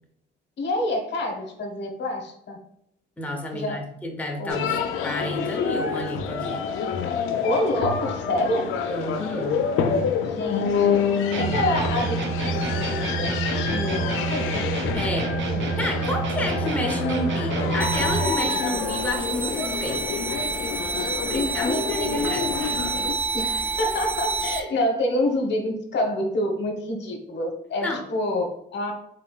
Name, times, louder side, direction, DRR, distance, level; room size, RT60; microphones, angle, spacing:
voice 1, 0.6-2.6 3.5-3.8 4.4-4.8 7.4-8.7 10.2-14.7 21.3-22.7 23.3-28.9, left 1 dB, 65° left, 2 dB, 1.0 m, -27 dB
voice 2, 3.2-6.6 8.9-9.6 14.9-15.3 15.8-20.1 21.3-22.6 27.8-28.0, left 1 dB, 5° left, 1 dB, 0.8 m, -30 dB
sound 1, 4.5-23.1, left 6 dB, 85° left, 0.5 m, -28 dB
sound 2, 11.3-18.3, right 4 dB, 70° right, 0.9 m, -28 dB
sound 3, 17.8-24.6, right 4 dB, 10° right, 0.4 m, -28 dB
4.2 x 3.7 x 2.3 m, 0.78 s
cardioid pair, 90°, 20 cm